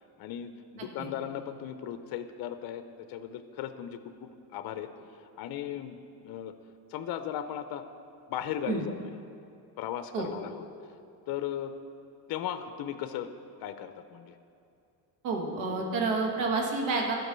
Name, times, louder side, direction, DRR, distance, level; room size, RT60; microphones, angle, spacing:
voice 1, 0.2-6.0 6.2-6.5 6.9-7.8 8.3-9.1 9.8-10.6 11.3-11.7 12.3-13.3 13.6-14.4, left 10 dB, 55° left, 10 dB, 0.6 m, -37 dB
voice 2, 15.2-17.2, right 3 dB, 85° right, 1 dB, 1.7 m, -29 dB
12.0 x 4.6 x 6.7 m, 2.6 s
cardioid pair, 115°, 44 cm